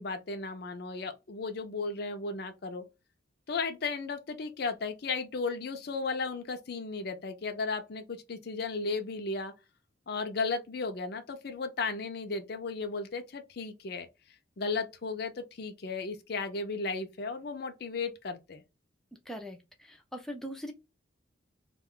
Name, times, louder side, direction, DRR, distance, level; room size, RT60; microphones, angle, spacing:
voice 1, 0.0-2.8 3.5-9.5 10.1-14.1 14.6-18.6, left 4 dB, 55° left, 0.5 m, -35 dB
voice 2, 19.3-20.7, equal, ahead, 0.4 m, -41 dB
2.4 x 2.2 x 3.6 m
head